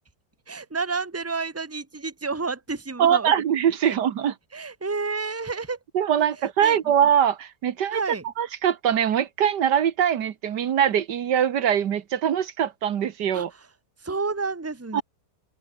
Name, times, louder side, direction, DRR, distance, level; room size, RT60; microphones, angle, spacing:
voice 1, 0.5-3.3 3.8-3.9 4.5-5.8 6.6-6.8 7.9-8.2 13.3-13.5 14.0-15.0, right 4 dB, 10° right, 1.4 m, -30 dB
voice 2, 3.0-4.3 5.9-8.0 8.4-13.5 14.9-15.0, right 9 dB, 80° right, 1.8 m, -22 dB
open air
omnidirectional pair, 1.8 m